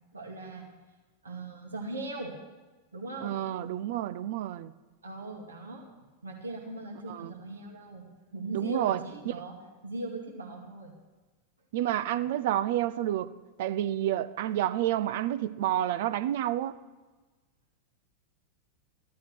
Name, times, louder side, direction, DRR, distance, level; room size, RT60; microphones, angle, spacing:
voice 1, 0.1-0.7 1.2-2.3 2.9-3.4 5.0-5.9 6.2-8.1 8.3-9.5 9.8-10.9, right 2 dB, 75° right, 1 dB, 2.3 m, -39 dB
voice 2, 3.2-4.7 7.1-7.3 8.5-9.0 9.3-9.4 11.7-13.3 13.6-16.8, right 12 dB, 55° right, 14 dB, 0.6 m, -29 dB
15.0 x 12.5 x 6.0 m, 1.2 s
figure-of-eight pair, 90°, 0 cm